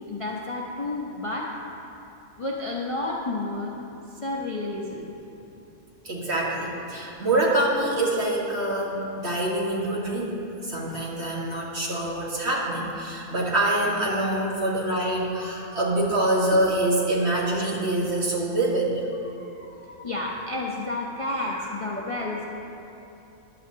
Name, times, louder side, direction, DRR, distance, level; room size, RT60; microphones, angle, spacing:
voice 1, 0.1-1.5 2.4-3.8 4.2-5.1 11.3-11.8 14.5-14.8 15.3-15.8 19.3-22.4, left 2 dB, 30° left, -3 dB, 0.7 m, -32 dB
voice 2, 6.0-10.4 10.6-19.0, right 1 dB, 45° right, -4 dB, 1.8 m, -25 dB
15.0 x 10.5 x 2.8 m, 2.9 s
omnidirectional pair, 1.6 m